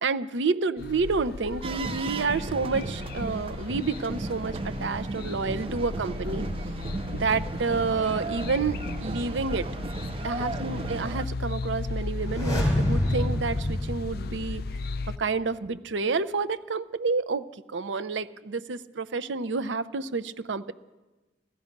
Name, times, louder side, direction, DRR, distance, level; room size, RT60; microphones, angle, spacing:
voice 1, 0.0-6.5 7.1-9.7 10.2-14.6 15.2-17.4 17.7-20.7, right 4 dB, 80° right, 13 dB, 0.6 m, -29 dB
sound 1, 0.8-15.2, left 3 dB, 55° left, 0.4 m, -35 dB
sound 2, 1.6-11.3, right 3 dB, 30° right, 0.4 m, -35 dB
sound 3, 12.1-15.0 15.3-15.4, left 1 dB, 20° left, 3.4 m, -28 dB
15.0 x 14.5 x 5.2 m, 1.2 s
head